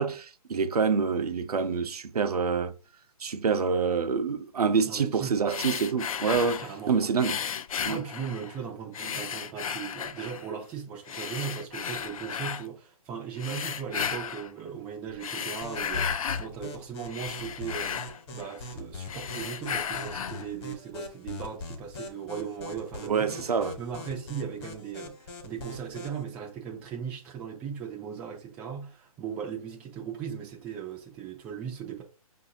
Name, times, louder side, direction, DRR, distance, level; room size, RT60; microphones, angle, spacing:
voice 1, 0.0-2.7 3.2-7.4 7.8-8.0 23.1-23.8, right 5 dB, 80° right, 0.6 m, -26 dB
voice 2, 4.8-5.4 6.6-7.0 7.9-18.0 18.3-32.0, right 7 dB, 5° right, 0.3 m, -38 dB
sound 1, 5.5-6.8 7.2-8.6 8.9-10.5 11.1-12.7 13.4-14.5 15.1-16.5 16.9-18.7 19.0-20.5, left 7 dB, 65° left, 0.4 m, -34 dB
sound 2, 15.6-26.2, left 2 dB, 40° left, 1.2 m, -41 dB
5.5 x 2.6 x 2.7 m
hypercardioid pair, 145°, 19 cm